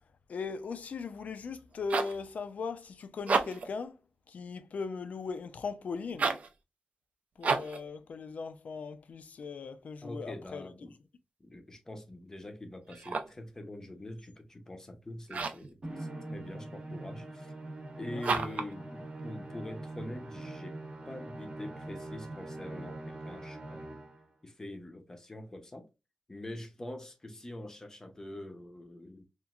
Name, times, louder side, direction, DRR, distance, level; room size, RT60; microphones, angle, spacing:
voice 1, 0.3-4.0 4.3-6.4 7.4-10.7 18.1-18.2, left 4 dB, 80° left, 0.3 m, -39 dB
sound 1, 1.6-2.2 3.1-3.8 6.1-6.5 7.4-7.8 12.9-13.4 15.3-15.7 18.2-18.7, right 4 dB, 70° right, 0.4 m, -31 dB
voice 2, 10.0-11.0 11.4-17.5 18.0-20.8 21.0-24.0 24.4-25.9 26.3-29.3, left 1 dB, 20° left, 0.6 m, -44 dB
Musical instrument, 15.8-24.3, right 2 dB, 45° right, 0.8 m, -43 dB
2.9 x 2.4 x 2.3 m
wide cardioid pair, 140°, 3 cm